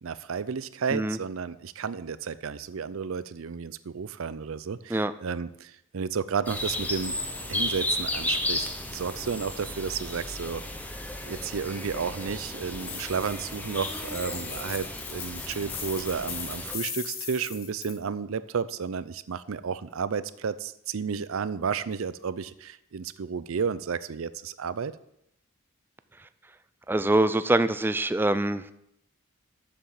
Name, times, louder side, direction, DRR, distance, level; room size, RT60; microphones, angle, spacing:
voice 1, 0.0-7.2 7.5-10.6 11.3-24.9, right 6 dB, 65° right, 16 dB, 0.5 m, -32 dB
sound 1, 6.4-16.8, left 1 dB, 5° left, 0.8 m, -34 dB
sound 2, 12.8-18.0, left 7 dB, 65° left, 1.6 m, -39 dB
voice 2, 26.9-28.7, right 2 dB, 10° right, 13 dB, 0.3 m, -24 dB
7.3 x 6.9 x 7.0 m, 0.79 s
head